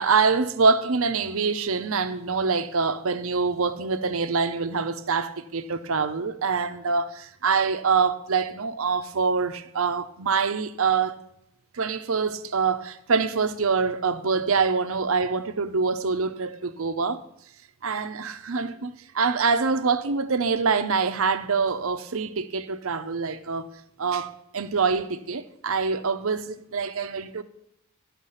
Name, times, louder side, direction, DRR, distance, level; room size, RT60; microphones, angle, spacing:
voice 1, 0.0-11.2 11.7-17.2 17.8-23.7 24.0-27.4, right 5 dB, 65° right, 0.7 m, -25 dB
12.5 x 5.9 x 5.6 m
head